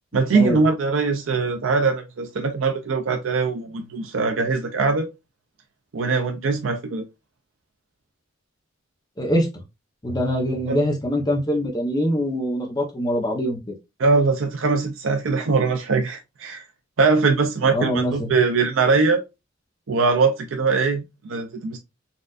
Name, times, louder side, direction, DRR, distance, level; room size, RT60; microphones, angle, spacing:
voice 1, 0.1-5.1 5.9-7.0 10.7-10.8 14.0-16.6 17.0-19.2 19.9-21.8, right 4 dB, 90° right, 0.5 m, -21 dB
voice 2, 9.2-9.5 10.0-13.7 17.7-18.3, equal, 20° left, 0.8 m, -23 dB
4.2 x 2.5 x 2.4 m
head